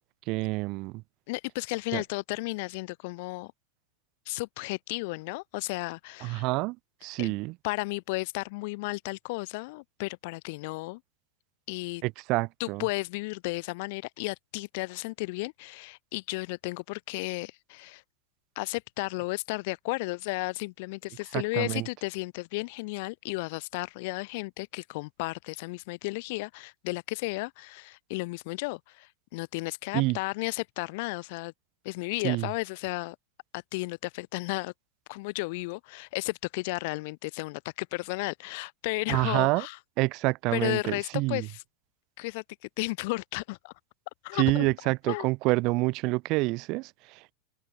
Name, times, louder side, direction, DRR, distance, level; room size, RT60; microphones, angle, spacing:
voice 1, 0.3-1.0 1.9-2.0 6.2-6.8 7.0-7.6 12.0-12.8 21.3-21.9 29.9-30.2 32.2-32.5 39.1-39.7 40.0-41.5 44.3-47.3, right 23 dB, 40° right, 0.7 m, -27 dB
voice 2, 1.3-3.5 4.3-6.4 7.2-7.3 7.6-11.0 11.7-12.0 12.6-18.0 18.6-31.5 31.8-33.2 33.5-34.7 35.1-39.8 40.5-41.5 42.2-42.4 42.8-43.7 44.2-44.7 45.1-45.3, left 25 dB, 50° left, 1.0 m, -33 dB
figure-of-eight pair, 90°, 0 cm